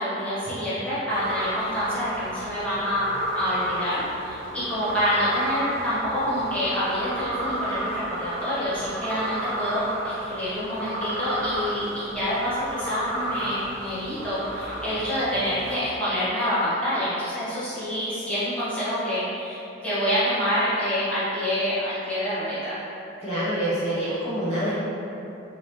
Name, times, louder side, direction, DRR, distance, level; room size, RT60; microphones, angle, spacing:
voice 1, 0.0-22.8, equal, 5° left, -14 dB, 1.0 m, -27 dB
sound 1, 1.1-15.8, right 1 dB, 85° right, 0.6 m, -32 dB
voice 2, 23.2-24.7, right 1 dB, 35° left, -13 dB, 0.8 m, -26 dB
3.3 x 2.8 x 2.9 m, 2.9 s
head